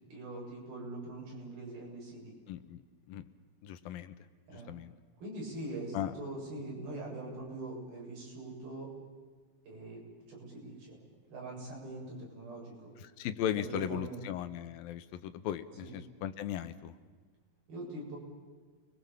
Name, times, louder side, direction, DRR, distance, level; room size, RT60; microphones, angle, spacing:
voice 1, 0.1-2.3 4.5-4.7 5.2-8.9 9.7-11.0 11.3-12.9 13.5-14.2 15.8-15.9 17.7-18.2, right 2 dB, 75° right, -2 dB, 9.3 m, -43 dB
voice 2, 2.5-2.8 3.1-3.2 3.6-4.1 4.7-4.9 5.9-6.1 13.2-16.9, left 10 dB, 75° left, 11 dB, 2.7 m, -37 dB
30.0 x 21.5 x 7.1 m, 1.5 s
omnidirectional pair, 4.4 m